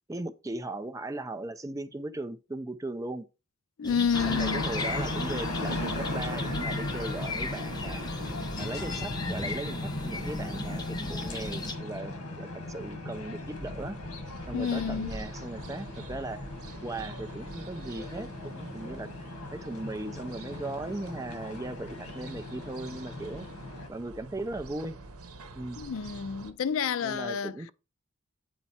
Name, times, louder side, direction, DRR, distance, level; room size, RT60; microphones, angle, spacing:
voice 1, 0.1-3.3 3.8-8.0 8.6-14.0 14.5-16.5 16.8-23.5 23.9-25.0 25.5-25.8 27.0-27.7, right 2 dB, 15° right, 0.4 m, -38 dB
voice 2, 3.8-4.6 14.5-15.1 25.8-27.5, left 6 dB, 65° left, 0.4 m, -29 dB
sound 1, 3.8-11.7, left 2 dB, 20° left, 0.7 m, -37 dB
sound 2, 4.1-23.9, left 2 dB, 85° left, 1.3 m, -37 dB
sound 3, 14.3-26.5, right 3 dB, 75° right, 0.9 m, -48 dB
8.4 x 4.4 x 4.2 m
head